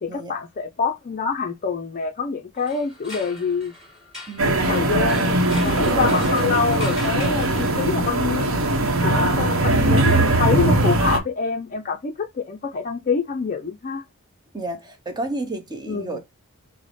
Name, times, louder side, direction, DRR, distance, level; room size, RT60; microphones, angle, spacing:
voice 1, 0.0-3.7 4.4-8.5 9.0-14.0 15.9-16.2, left 5 dB, 35° left, 0.4 m, -26 dB
sound 1, 2.6-8.3, left 1 dB, 5° right, 2.1 m, -39 dB
voice 2, 4.3-4.6 14.5-16.2, right 2 dB, 20° right, 0.7 m, -32 dB
sound 2, 4.4-11.2, right 2 dB, 60° right, 0.8 m, -20 dB
4.7 x 2.0 x 4.0 m
head